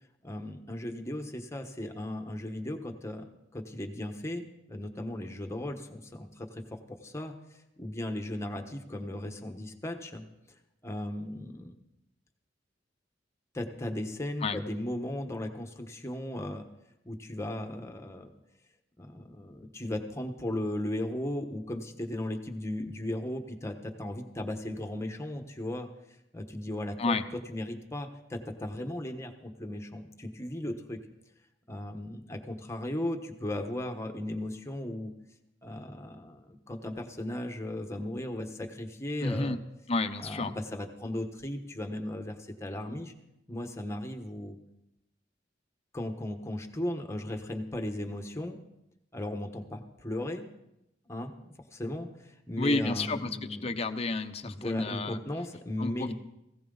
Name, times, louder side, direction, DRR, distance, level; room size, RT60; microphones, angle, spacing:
voice 1, 0.2-4.4 4.7-10.2 10.8-11.8 13.5-16.7 17.0-18.3 19.0-25.9 26.3-27.1 27.5-31.0 31.7-35.1 35.6-39.6 40.2-43.1 43.5-44.6 45.9-48.6 49.1-50.5 51.1-53.8 54.4-56.1, left 1 dB, 15° left, 5 dB, 1.3 m, -36 dB
voice 2, 39.2-39.6 39.9-40.5 52.6-55.2 55.8-56.1, left 2 dB, 35° left, 8 dB, 0.8 m, -30 dB
18.5 x 16.5 x 4.0 m, 0.87 s
head